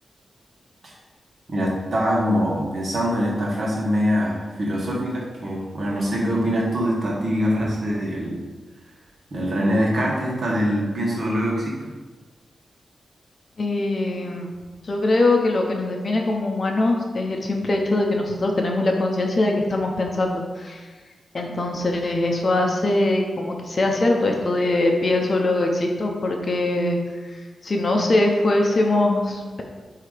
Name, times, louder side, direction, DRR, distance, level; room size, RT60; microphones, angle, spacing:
voice 1, 1.5-8.4 9.3-11.9, equal, 45° right, -3 dB, 1.5 m, -23 dB
voice 2, 13.6-14.5 14.8-20.8 21.3-27.0 27.2-29.6, left 2 dB, 40° left, 2 dB, 0.8 m, -22 dB
7.8 x 2.9 x 5.0 m, 1.3 s
wide cardioid pair, 155°, 0 cm